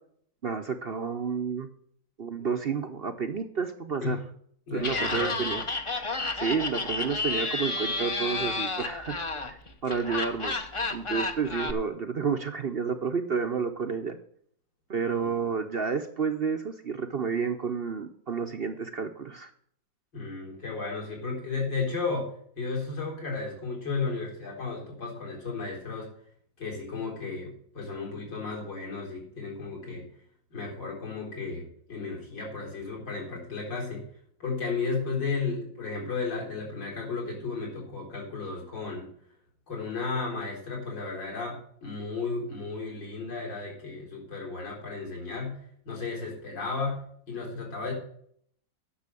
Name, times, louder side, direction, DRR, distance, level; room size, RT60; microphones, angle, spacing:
voice 1, 0.4-1.7 2.2-4.2 4.7-5.6 6.3-14.2 14.9-19.5, right 5 dB, 55° right, 6 dB, 0.6 m, -30 dB
voice 2, 4.7-5.5 20.1-22.3 22.6-26.1 26.6-30.1 30.5-34.0 34.4-39.1 39.7-45.6 45.8-47.0 47.3-47.9, left 4 dB, 70° left, -2 dB, 5.0 m, -34 dB
Laughter, 4.8-11.7, left 3 dB, 30° left, 0.5 m, -31 dB
10.0 x 6.4 x 8.3 m, 0.65 s
omnidirectional pair, 2.0 m